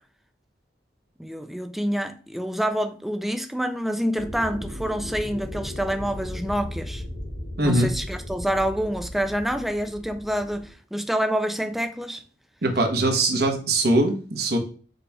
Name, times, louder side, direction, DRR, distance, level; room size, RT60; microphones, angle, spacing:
voice 1, 1.2-7.0 7.6-12.2, equal, ahead, 0.3 m, -27 dB
sound 1, 4.2-10.7, left 1 dB, 85° left, 2.1 m, -36 dB
voice 2, 7.6-7.9 12.6-14.6, right 2 dB, 60° right, 1.0 m, -21 dB
5.3 x 2.4 x 4.0 m
head